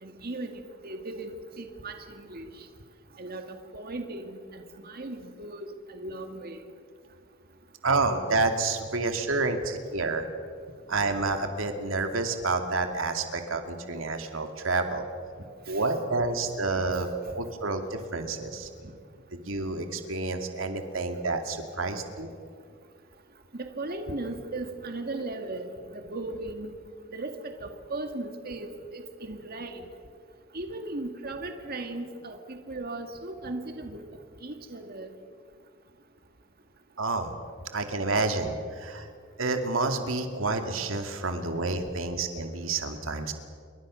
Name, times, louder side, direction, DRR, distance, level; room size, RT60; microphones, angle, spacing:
voice 1, 0.0-2.5 3.2-6.6 23.8-26.7 27.1-28.7 28.9-29.8 30.5-34.0 34.4-35.1, right 2 dB, 50° right, 5 dB, 2.0 m, -37 dB
voice 2, 7.8-10.2 10.9-15.0 15.7-17.1 17.3-18.7 19.3-22.3 37.0-37.3 37.7-39.1 39.4-43.3, right 3 dB, 85° right, 5 dB, 2.4 m, -29 dB
28.5 x 23.5 x 6.4 m, 2.2 s
head